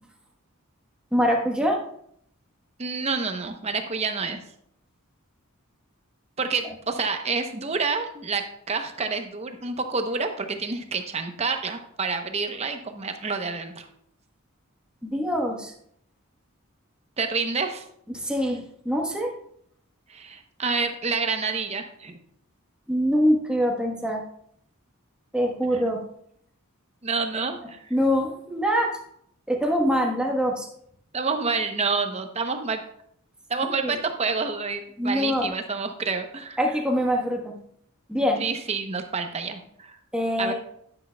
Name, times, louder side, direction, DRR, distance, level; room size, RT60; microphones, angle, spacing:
voice 1, 1.1-1.8 15.0-15.7 18.1-19.3 22.9-24.2 25.3-26.0 27.9-29.0 29.5-30.7 33.8-34.0 35.0-35.5 36.6-37.6 38.1-38.4 40.1-40.5, equal, 5° right, 0 dB, 1.1 m, -24 dB
voice 2, 2.8-4.4 6.4-13.8 17.2-17.8 20.1-22.2 27.0-27.8 31.1-32.8 33.5-36.6 38.4-40.0 40.4-40.5, right 4 dB, 30° right, 6 dB, 0.8 m, -28 dB
10.0 x 9.9 x 2.3 m, 0.70 s
head